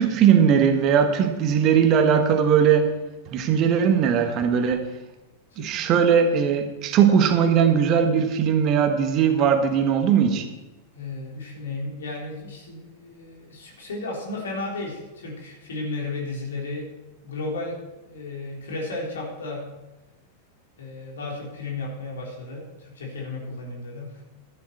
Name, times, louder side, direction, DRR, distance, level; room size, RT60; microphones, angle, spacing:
voice 1, 0.0-2.9 3.3-4.8 5.6-10.4, right 7 dB, 35° right, 6 dB, 1.5 m, -19 dB
voice 2, 10.9-16.9 17.2-19.7 20.8-24.2, left 2 dB, 65° left, -2 dB, 3.8 m, -34 dB
12.5 x 11.5 x 4.5 m, 1.1 s
figure-of-eight pair, 90°, 0 cm